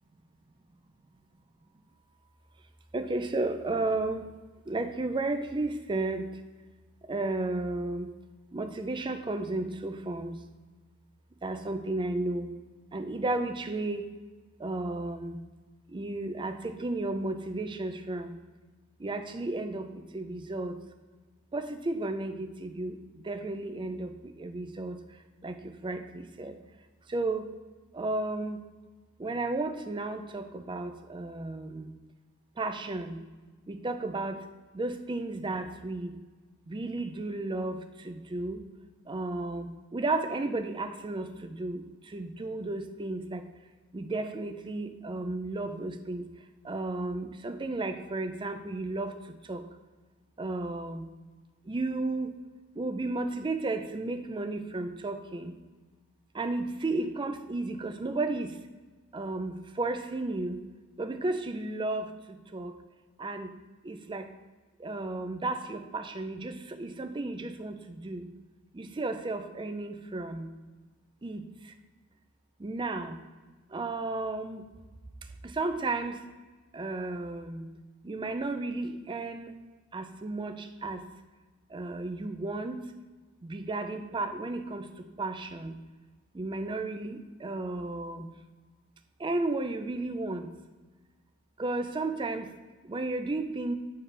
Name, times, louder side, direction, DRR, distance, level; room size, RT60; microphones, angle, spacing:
voice 1, 2.9-4.3 4.7-6.3 7.1-8.1 8.5-10.4 11.4-12.5 12.9-14.1 14.6-15.4 15.9-18.4 19.0-20.8 21.5-25.0 25.4-26.6 27.1-27.5 27.9-28.6 29.2-31.9 32.6-33.2 33.7-34.4 34.7-36.1 36.7-38.6 39.1-43.5 43.9-46.3 46.6-49.2 49.4-49.6 50.4-51.1 51.7-52.4 52.8-55.6 56.3-58.6 59.1-60.6 61.0-62.8 63.2-63.5 63.8-64.3 64.8-68.3 68.7-70.5 71.2-71.7 72.6-73.2 73.7-74.7 75.4-76.2 76.7-77.7 78.0-79.5 79.9-81.1 81.7-82.9 83.4-85.7 86.3-88.3 89.2-90.5 91.6-92.5 92.8-93.7, right 2 dB, 20° right, 7 dB, 0.4 m, -33 dB
6.6 x 5.6 x 3.3 m, 1.3 s
head